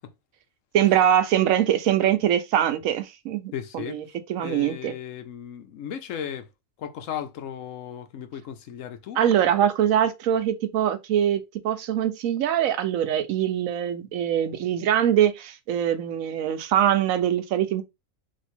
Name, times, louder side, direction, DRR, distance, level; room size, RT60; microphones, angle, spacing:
voice 1, 0.7-4.0 4.3-4.9 9.2-17.8, right 10 dB, 80° right, 1.0 m, -23 dB
voice 2, 3.5-4.0 4.4-6.5 6.8-9.2, left 9 dB, 75° left, 1.0 m, -35 dB
3.1 x 2.7 x 4.3 m
omnidirectional pair, 1.4 m